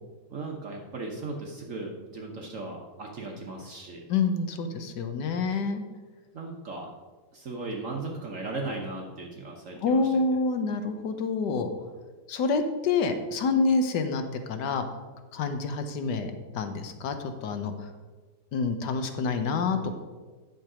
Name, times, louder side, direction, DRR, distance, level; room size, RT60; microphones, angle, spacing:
voice 1, 0.3-4.0 6.3-6.9 7.3-10.2, right 3 dB, 50° right, 0 dB, 1.2 m, -37 dB
voice 2, 4.1-5.8 9.8-11.7 12.3-14.8 15.3-17.1 17.4-17.7 18.5-20.0, left 4 dB, 75° left, 7 dB, 1.5 m, -27 dB
10.5 x 6.4 x 4.9 m, 1.3 s
omnidirectional pair, 1.9 m